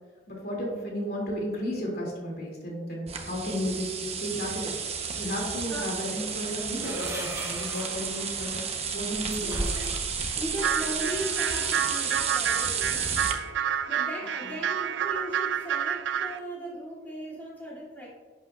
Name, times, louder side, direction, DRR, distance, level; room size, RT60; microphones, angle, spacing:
voice 1, 0.3-4.7 5.2-9.6 14.4-14.6, equal, 55° left, -2 dB, 2.6 m, -33 dB
sound 1, 3.1-13.3, right 6 dB, 35° right, 0.9 m, -32 dB
sound 2, 6.1-11.8, right 1 dB, 15° right, 1.5 m, -39 dB
voice 2, 9.4-9.9 10.4-13.0 13.9-18.1, right 1 dB, 10° left, -8 dB, 2.6 m, -37 dB
sound 3, 10.6-16.4, right 8 dB, 80° right, 0.3 m, -29 dB
11.0 x 8.3 x 2.4 m, 1.5 s
head